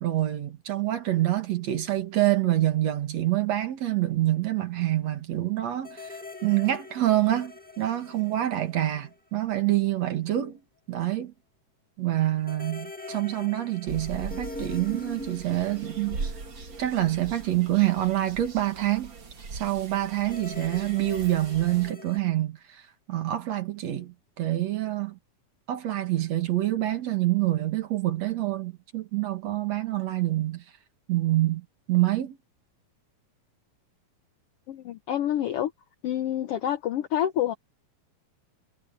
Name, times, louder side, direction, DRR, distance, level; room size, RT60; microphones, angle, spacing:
voice 1, 0.0-10.6 10.9-11.3 12.0-16.3 16.8-19.1 19.5-22.8 23.1-25.2 25.7-30.6 31.1-32.4, right 14 dB, 60° right, 2.8 m, -26 dB
sound 1, 5.8-9.6 9.9-10.0 12.4-17.8 20.2-22.2, left 2 dB, 10° left, 0.4 m, -43 dB
sound 2, 13.9-21.9, right 4 dB, 40° right, 2.9 m, -40 dB
voice 2, 34.7-35.7 36.0-37.5, left 11 dB, 75° left, 1.4 m, -27 dB
omnidirectional pair, 3.5 m